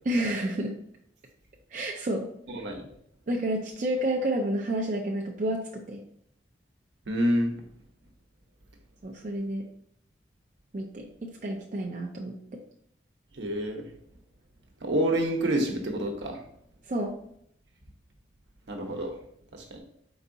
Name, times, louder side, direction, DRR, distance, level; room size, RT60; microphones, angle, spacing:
voice 1, 0.1-0.7 1.7-2.3 3.3-6.0 9.0-9.7 10.7-12.6 16.9-17.1, right 1 dB, 45° right, 0 dB, 0.4 m, -30 dB
voice 2, 2.5-2.9 7.1-7.6 13.3-13.9 14.8-16.4 18.7-19.2 19.5-19.8, right 1 dB, 75° right, 2 dB, 0.9 m, -28 dB
4.5 x 3.9 x 2.6 m, 0.70 s
head